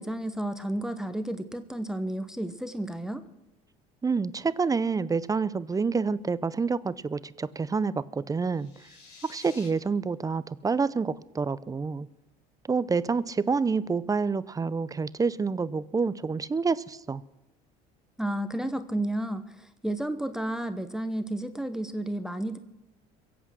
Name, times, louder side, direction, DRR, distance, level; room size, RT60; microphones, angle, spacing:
voice 1, 0.0-3.3 18.2-22.6, right 1 dB, 5° right, 9 dB, 1.0 m, -32 dB
voice 2, 4.0-8.7 9.3-12.1 12.7-17.2, right 4 dB, 20° right, 17 dB, 0.6 m, -28 dB
sound 1, 8.4-9.7, left 4 dB, 55° left, 4.1 m, -50 dB
22.5 x 8.2 x 6.2 m, 0.98 s
supercardioid pair, 85°, 19 cm